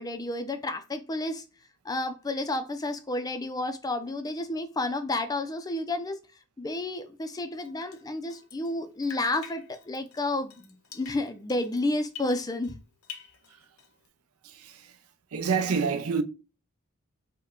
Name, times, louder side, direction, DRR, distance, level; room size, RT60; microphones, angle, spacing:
voice 1, 0.0-1.4 1.8-6.2 6.6-12.8, left 2 dB, 15° left, 0.4 m, -31 dB
Drip, 7.6-8.8 9.0-12.8 13.0-14.1, left 7 dB, 75° left, 0.7 m, -47 dB
voice 2, 14.4-15.0 15.3-16.2, right 5 dB, 80° right, 0.6 m, -28 dB
5.3 x 2.2 x 3.7 m
head